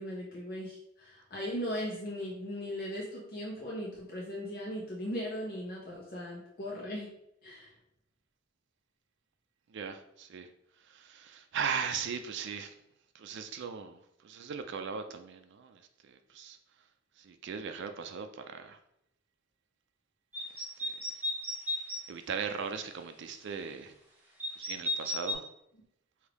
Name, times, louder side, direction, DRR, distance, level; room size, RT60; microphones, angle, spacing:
voice 1, 0.0-7.1 7.4-7.8, equal, 50° left, -4 dB, 0.8 m, -38 dB
voice 2, 9.7-10.5 10.8-12.8 13.1-16.6 17.2-18.8 20.6-20.9 22.1-24.0 24.5-25.5, right 6 dB, 60° right, 7 dB, 0.4 m, -38 dB
sound 1, 20.3-22.0 24.4-25.3, left 1 dB, 10° right, 1.0 m, -34 dB
4.9 x 2.7 x 3.4 m, 0.79 s
head